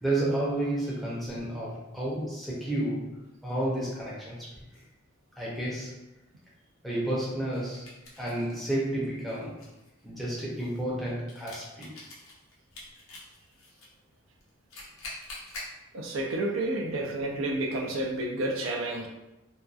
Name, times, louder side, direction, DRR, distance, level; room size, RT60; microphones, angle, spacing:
voice 1, 0.0-4.5 5.4-6.0 6.8-9.6 10.0-11.9, right 1 dB, ahead, -7 dB, 0.6 m, -31 dB
sound 1, 0.8-1.4 3.9-4.0 4.7-4.9 7.5-8.6 9.0-13.9 14.4-15.7, left 2 dB, 90° left, 0.7 m, -46 dB
voice 2, 15.9-19.1, right 2 dB, 80° right, 1 dB, 0.4 m, -30 dB
2.7 x 2.2 x 2.3 m, 0.98 s
head